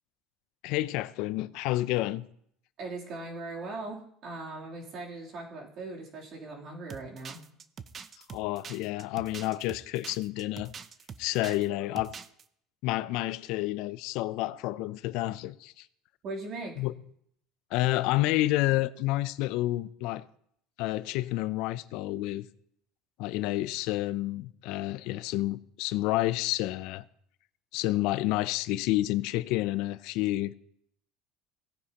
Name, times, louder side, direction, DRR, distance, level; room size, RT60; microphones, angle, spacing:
voice 1, 0.6-2.3 8.3-10.7 11.2-12.1 12.8-15.9 16.8-16.9 17.7-20.2 20.8-22.5 23.2-27.0 27.7-30.5, left 17 dB, 70° left, 0.5 m, -29 dB
voice 2, 2.8-7.4 16.2-16.8, right 3 dB, 50° right, 3.2 m, -39 dB
sound 1, 6.9-11.7 12.0-12.4, right 6 dB, 30° right, 0.6 m, -44 dB
16.5 x 9.5 x 2.9 m
supercardioid pair, 125°, 0 cm